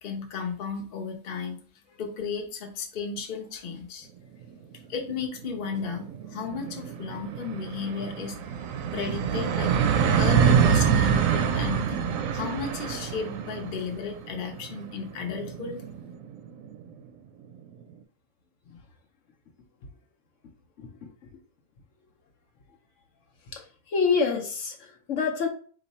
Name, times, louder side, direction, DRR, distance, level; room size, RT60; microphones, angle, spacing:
voice 1, 0.0-1.6 2.0-4.1 4.9-8.4 8.9-9.8 10.2-15.8, left 5 dB, 45° left, 3 dB, 0.9 m, -34 dB
sound 1, 4.6-4.7 5.0-5.1 5.4-16.8, right 7 dB, 80° right, 1.0 m, -26 dB
voice 2, 20.8-21.1 23.5-25.5, left 5 dB, 70° left, 2 dB, 1.1 m, -27 dB
4.2 x 3.0 x 4.1 m, 0.44 s
omnidirectional pair, 1.4 m